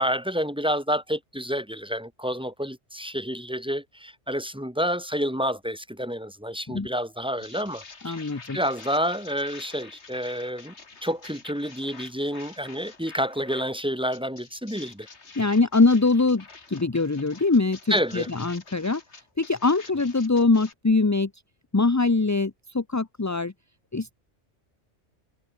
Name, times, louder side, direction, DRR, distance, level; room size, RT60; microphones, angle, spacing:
voice 1, 0.0-8.2 8.5-10.7 11.0-15.1 17.9-18.3, equal, 5° right, 2.9 m, -29 dB
sound 1, 7.4-13.7 14.1-20.7, left 4 dB, 65° left, 2.6 m, -47 dB
voice 2, 8.0-8.6 15.4-19.0 19.4-21.3 21.7-23.5 23.9-24.1, left 3 dB, 20° left, 0.6 m, -23 dB
omnidirectional pair, 1.2 m